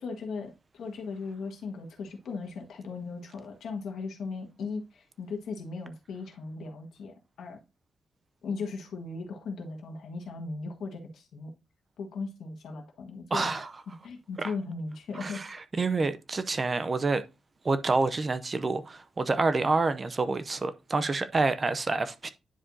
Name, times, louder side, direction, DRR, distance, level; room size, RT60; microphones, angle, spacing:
voice 1, 0.0-7.6 8.4-11.5 12.0-15.4, left 4 dB, 75° left, 1.6 m, -38 dB
voice 2, 13.3-13.7 14.4-14.5 15.1-17.2 17.6-22.3, right 3 dB, 25° right, 0.5 m, -28 dB
10.0 x 4.8 x 2.7 m
wide cardioid pair, 175°, 0 cm